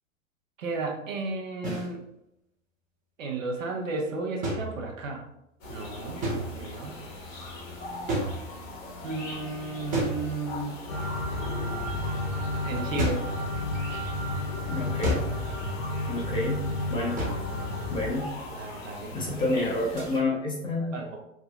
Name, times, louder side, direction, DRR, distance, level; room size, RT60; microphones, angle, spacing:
voice 1, 0.6-2.0 3.2-5.3 5.7-7.0 9.0-10.9 12.6-13.2 18.5-19.4 20.9-21.2, right 3 dB, 80° right, 1 dB, 0.7 m, -34 dB
sound 1, 1.6-1.9 4.4-5.2 6.2-6.8 8.1-8.8 9.9-10.8 13.0-13.4 15.0-15.5 17.2-17.6 20.0-20.1, equal, 20° right, 0.8 m, -31 dB
sound 2, 5.6-20.2, left 2 dB, 85° left, 1.1 m, -41 dB
sound 3, 10.9-18.1, left 1 dB, 55° left, 0.7 m, -32 dB
voice 2, 14.7-15.3 16.1-16.6 16.9-17.2 17.9-18.3 19.1-21.0, left 2 dB, 15° left, -4 dB, 0.3 m, -29 dB
3.5 x 2.1 x 2.2 m, 0.84 s
hypercardioid pair, 100°, 38 cm